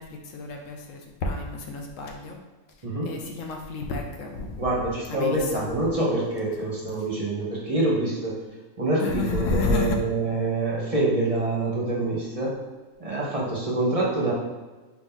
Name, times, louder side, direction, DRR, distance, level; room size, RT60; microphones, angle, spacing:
voice 1, 0.0-2.4 3.0-4.6 5.1-5.7 9.0-10.0, left 2 dB, 70° left, 2 dB, 1.0 m, -30 dB
voice 2, 2.8-3.2 4.6-8.3 8.8-12.5 13.0-14.3, right 2 dB, 30° right, -5 dB, 0.8 m, -26 dB
4.4 x 2.8 x 3.8 m, 1.3 s
omnidirectional pair, 1.4 m